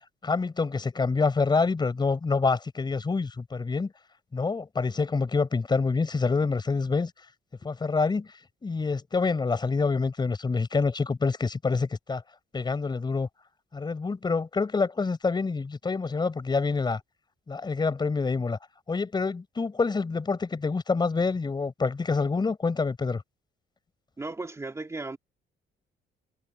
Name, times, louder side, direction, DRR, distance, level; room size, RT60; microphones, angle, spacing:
voice 1, 0.2-3.9 4.3-7.1 7.6-8.3 8.6-12.2 12.5-13.3 13.7-17.0 17.5-18.6 18.9-23.2, left 4 dB, 25° left, 4.3 m, -27 dB
voice 2, 24.2-25.2, right 3 dB, 15° right, 2.3 m, -35 dB
cardioid pair, 145°, 19 cm